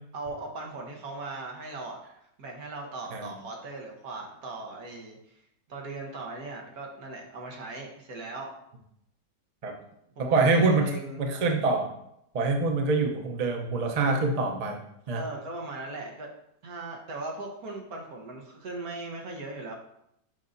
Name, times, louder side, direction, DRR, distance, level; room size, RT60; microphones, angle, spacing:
voice 1, 0.1-2.0 2.4-5.4 5.7-8.5 9.8-9.9 10.2-11.2 13.9-14.1 15.1-16.3 16.6-19.7, right 2 dB, 60° right, 0 dB, 1.5 m, -38 dB
voice 2, 10.2-10.9 11.2-11.9 12.3-14.8 15.1-15.2, right 3 dB, 80° right, 3 dB, 0.3 m, -25 dB
7.5 x 5.4 x 2.6 m, 0.77 s
omnidirectional pair, 1.9 m